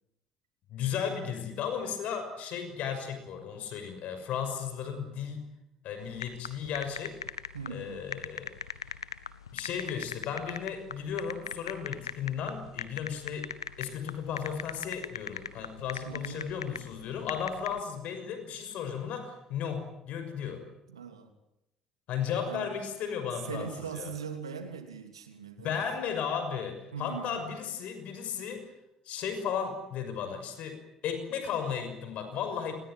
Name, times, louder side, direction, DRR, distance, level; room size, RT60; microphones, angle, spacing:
voice 1, 0.7-5.5 5.8-7.2 7.7-8.5 9.5-13.5 13.8-20.6 22.1-24.1 25.6-28.7 29.0-32.8, left 7 dB, 60° left, 8 dB, 6.2 m, -35 dB
sound 1, 6.0-17.8, left 7 dB, 90° left, 1.1 m, -39 dB
voice 2, 7.5-8.0 16.0-16.4 20.9-21.3 22.5-22.7 23.5-25.9 26.9-27.6, right 6 dB, 85° right, 7 dB, 3.1 m, -40 dB
27.0 x 20.5 x 9.4 m, 0.84 s
hypercardioid pair, 55°, 3 cm